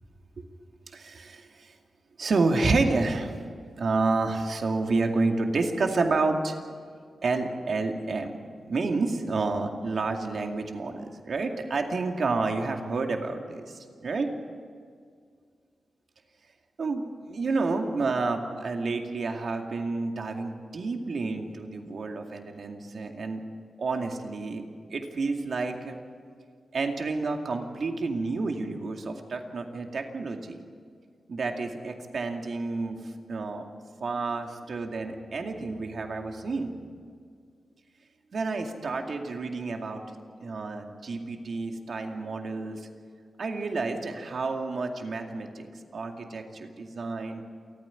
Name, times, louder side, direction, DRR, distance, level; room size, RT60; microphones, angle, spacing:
voice 1, 0.9-1.8 2.2-3.4 3.8-6.6 7.2-8.3 8.6-14.3 16.8-23.4 23.8-24.6 24.9-26.0 26.7-30.6 31.3-33.6 34.0-36.7 38.3-40.2 40.4-42.9 43.4-45.7 45.9-47.4, right 3 dB, 65° right, 3 dB, 2.3 m, -29 dB
28.5 x 9.7 x 9.8 m, 2.1 s
cardioid pair, 70°, 0 cm